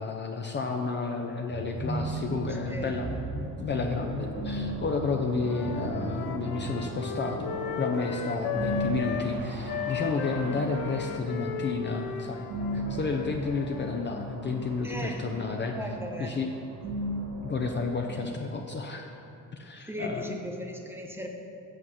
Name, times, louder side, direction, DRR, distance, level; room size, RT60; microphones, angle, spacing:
voice 1, 0.0-15.8 16.2-16.5 17.4-19.1 19.5-20.4, left 4 dB, 30° left, 2 dB, 0.6 m, -31 dB
sound 1, 1.5-17.9, right 1 dB, 65° right, 2.1 m, -36 dB
Wind instrument woodwind instrument, 5.4-9.3 9.7-14.0, left 7 dB, 80° left, 0.7 m, -36 dB
voice 2, 14.8-15.2 15.7-16.4 16.9-17.1 19.9-21.3, equal, 5° right, 1 dB, 1.1 m, -37 dB
7.9 x 4.7 x 7.3 m, 2.7 s
cardioid pair, 90°, 36 cm